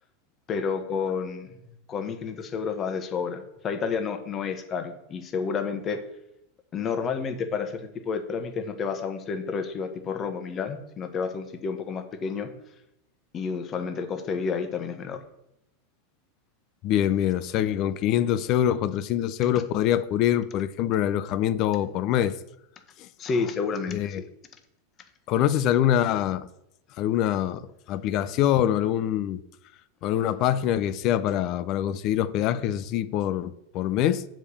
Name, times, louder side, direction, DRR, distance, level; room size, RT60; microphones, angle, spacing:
voice 1, 0.5-1.6 1.9-6.0 6.7-12.5 13.3-15.2 23.2-24.3, left 5 dB, 30° left, 1.3 m, -30 dB
voice 2, 16.8-22.3 23.0-23.1 23.9-24.2 25.3-26.5 27.0-29.4 30.0-34.2, left 11 dB, 50° left, 0.5 m, -24 dB
7.4 x 5.1 x 7.0 m
supercardioid pair, 120°, 0 cm